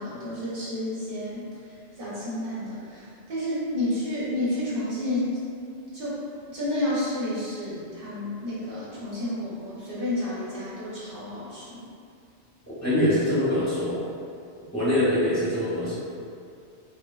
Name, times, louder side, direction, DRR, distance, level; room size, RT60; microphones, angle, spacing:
voice 1, 0.0-5.3 5.9-11.8, left 1 dB, 55° right, -10 dB, 0.8 m, -31 dB
voice 2, 12.7-14.0 14.7-16.0, left 1 dB, 15° left, -12 dB, 0.8 m, -24 dB
2.9 x 2.2 x 2.2 m, 2.4 s
omnidirectional pair, 1.2 m